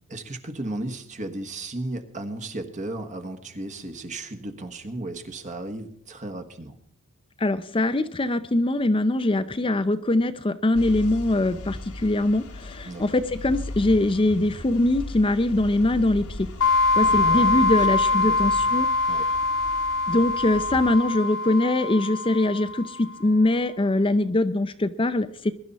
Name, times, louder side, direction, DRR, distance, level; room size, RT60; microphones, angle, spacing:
voice 1, 0.1-6.7 12.8-13.0 17.0-17.9 18.1-18.4 19.0-19.3, right 2 dB, 35° right, 7 dB, 1.4 m, -35 dB
voice 2, 7.4-16.4 17.0-18.9 20.1-25.5, left 2 dB, 25° left, 10 dB, 0.6 m, -22 dB
sound 1, 10.7-20.9, left 1 dB, 75° left, 1.6 m, -38 dB
sound 2, 16.6-23.1, left 3 dB, 60° left, 1.5 m, -23 dB
21.5 x 11.5 x 4.1 m, 0.65 s
head